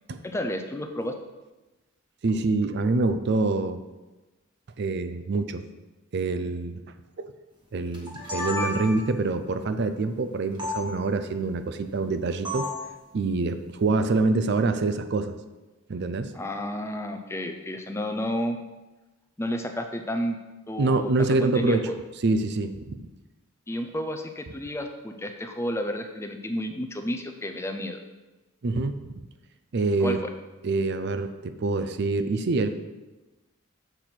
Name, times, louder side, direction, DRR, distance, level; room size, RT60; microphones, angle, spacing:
voice 1, 0.2-1.1 16.3-18.6 19.4-20.4 20.7-22.0 23.7-28.0 30.0-30.2, equal, 10° left, 5 dB, 0.5 m, -31 dB
voice 2, 2.2-3.8 4.8-5.6 6.1-6.8 7.2-7.3 7.7-12.7 13.1-15.4 15.9-16.3 20.8-21.9 22.2-23.0 28.6-29.0 29.7-30.2 30.6-32.7, right 3 dB, 50° right, 10 dB, 0.4 m, -25 dB
sound 1, 7.9-9.2 10.6-10.8 12.4-12.9, left 2 dB, 20° right, 1.4 m, -31 dB
6.8 x 4.5 x 5.9 m, 1.1 s
head